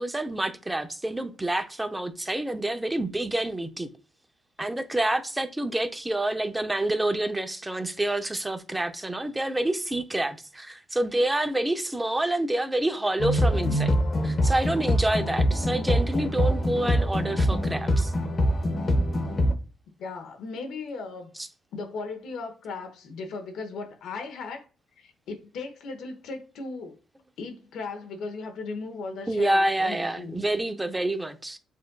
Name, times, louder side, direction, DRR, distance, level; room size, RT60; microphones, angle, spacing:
voice 1, 0.0-3.9 4.6-13.9 14.2-18.1 29.3-31.6, right 1 dB, 15° right, 0.6 m, -28 dB
sound 1, 13.2-19.5, equal, 40° left, 0.8 m, -24 dB
voice 2, 20.0-21.3 21.7-24.6 25.0-27.0 27.4-30.4, left 4 dB, 80° left, 0.9 m, -37 dB
7.1 x 2.5 x 2.2 m
cardioid pair, 90°, 0 cm